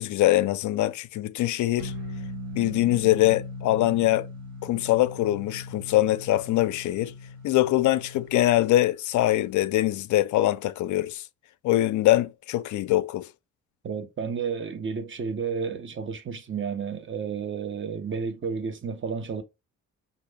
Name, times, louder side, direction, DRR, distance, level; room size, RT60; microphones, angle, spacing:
voice 1, 0.0-1.9 2.5-4.3 4.6-7.1 7.4-11.2 11.6-13.3, left 15 dB, 75° left, 0.5 m, -23 dB
sound 1, 1.8-8.6, left 2 dB, 80° right, 1.5 m, -39 dB
voice 2, 13.8-19.4, right 6 dB, 40° right, 1.0 m, -31 dB
5.4 x 2.5 x 3.4 m
cardioid pair, 90°, 30 cm